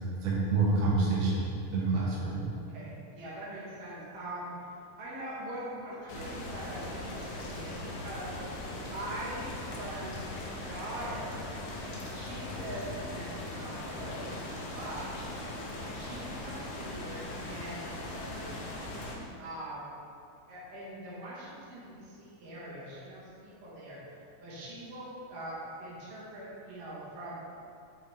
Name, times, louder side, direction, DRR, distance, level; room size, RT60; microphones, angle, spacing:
voice 1, 0.2-2.5, right 3 dB, 60° right, -7 dB, 2.2 m, -28 dB
voice 2, 1.9-4.5 5.0-8.3 8.8-10.3 10.7-11.5 12.1-15.3 15.9-18.5 19.4-19.9 20.5-24.0 24.4-27.4, right 1 dB, 80° right, -8 dB, 3.0 m, -42 dB
sound 1, 6.1-19.2, left 1 dB, 70° left, 1.6 m, -39 dB
7.1 x 5.1 x 3.5 m, 2.5 s
omnidirectional pair, 3.8 m